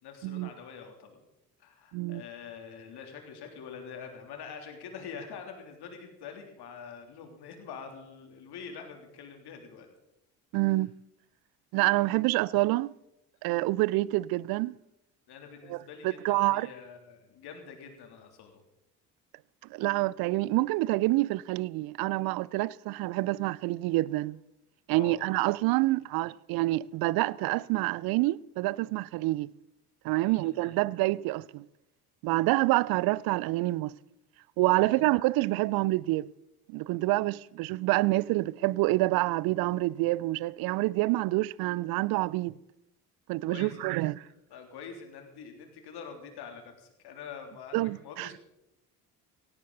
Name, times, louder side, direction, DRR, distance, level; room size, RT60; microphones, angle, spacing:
voice 1, 0.0-1.2 1.6-9.9 10.5-10.8 15.3-18.6 24.9-25.2 30.1-30.7 34.8-35.1 43.4-44.0 44.5-48.4, left 6 dB, 55° left, 3.4 m, -45 dB
voice 2, 10.5-10.9 11.7-12.9 13.4-14.7 15.7-15.8 16.0-16.7 19.7-24.4 24.9-29.5 30.0-31.6 32.2-33.9 34.6-36.3 36.7-42.6 43.3-44.2 47.7-48.3, right 19 dB, 50° right, 0.5 m, -27 dB
17.0 x 16.0 x 4.1 m
figure-of-eight pair, 50°, 46 cm